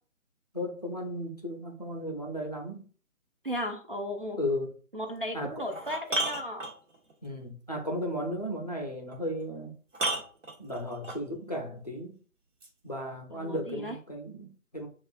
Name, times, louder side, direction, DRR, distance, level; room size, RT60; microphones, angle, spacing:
voice 1, 0.5-2.9 4.4-4.7 5.3-5.6 7.2-9.7 10.6-12.2 12.8-14.9, equal, 30° left, 1 dB, 0.5 m, -35 dB
voice 2, 3.4-4.4 4.9-6.7 13.3-14.0, equal, 40° right, 2 dB, 0.4 m, -35 dB
sound 1, 5.0-5.1 5.6-7.1 9.1-9.2 9.9-11.2 12.6-12.7, right 2 dB, 60° right, 1.3 m, -33 dB
6.9 x 2.4 x 2.5 m, 0.42 s
figure-of-eight pair, 155°, 43 cm